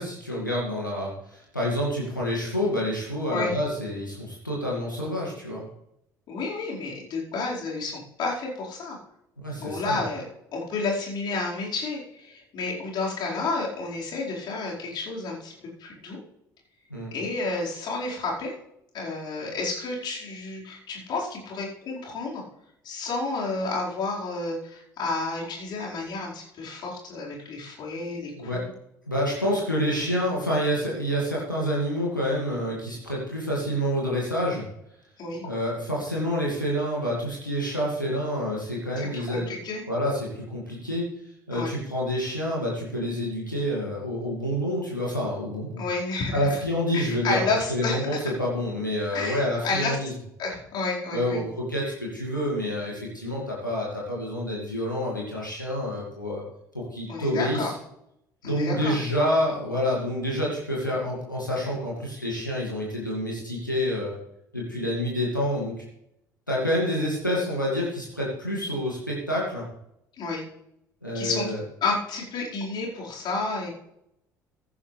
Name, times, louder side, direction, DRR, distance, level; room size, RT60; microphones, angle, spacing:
voice 1, 0.0-5.6 9.4-10.0 16.9-17.1 28.4-28.6 29.1-34.6 35.4-39.5 39.9-41.1 41.5-45.8 46.3-47.4 47.7-50.1 51.1-56.4 56.7-57.7 58.4-64.2 64.5-65.8 66.5-69.7 71.0-71.6, equal, 90° left, -4 dB, 2.2 m, -28 dB
voice 2, 6.3-9.0 9.6-10.2 10.5-15.5 15.8-16.2 17.1-18.5 18.9-22.4 22.8-28.7 35.2-35.5 39.0-39.8 41.5-41.7 45.8-46.6 46.9-48.2 49.1-50.0 50.4-51.4 51.8-51.9 57.1-57.7 58.4-58.9 70.2-70.4 71.1-71.5 71.8-73.7, left 3 dB, 45° left, -4 dB, 4.8 m, -31 dB
15.5 x 11.0 x 3.3 m, 0.78 s
figure-of-eight pair, 55°, 10 cm